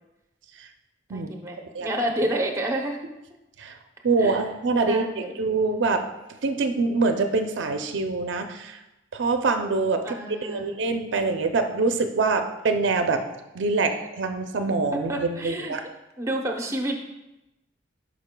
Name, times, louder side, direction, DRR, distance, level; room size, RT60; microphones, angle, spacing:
voice 1, 1.1-3.0 4.2-4.4 4.9-5.3 10.0-10.8 15.1-15.7 16.2-16.9, right 1 dB, 15° right, 2 dB, 0.7 m, -29 dB
voice 2, 4.0-5.1 5.4-6.1 6.4-8.8 9.1-10.2 10.4-13.2 13.6-15.8, right 3 dB, 80° right, 6 dB, 0.5 m, -24 dB
11.5 x 5.1 x 2.2 m, 0.97 s
head